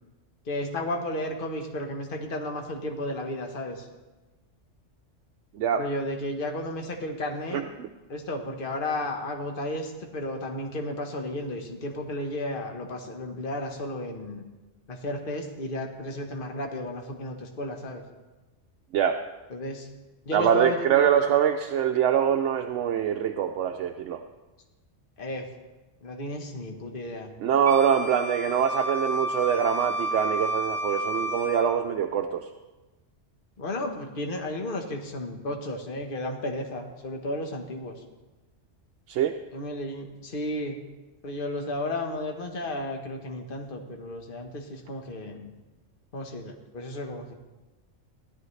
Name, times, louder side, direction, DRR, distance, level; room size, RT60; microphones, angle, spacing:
voice 1, 0.4-3.9 5.8-7.6 8.1-14.4 14.9-18.0 19.5-19.9 20.2-21.1 25.2-25.5 26.0-27.3 33.6-38.0 39.5-40.8 41.2-45.5 46.1-47.3, left 1 dB, 45° left, 2 dB, 1.4 m, -33 dB
voice 2, 7.5-7.9 18.9-19.2 20.3-24.2 27.4-32.5 39.1-39.4, right 8 dB, 75° right, 5 dB, 0.9 m, -24 dB
Wind instrument woodwind instrument, 27.7-31.7, right 1 dB, ahead, 1.5 m, -31 dB
16.0 x 11.5 x 3.2 m, 1.1 s
omnidirectional pair, 1.3 m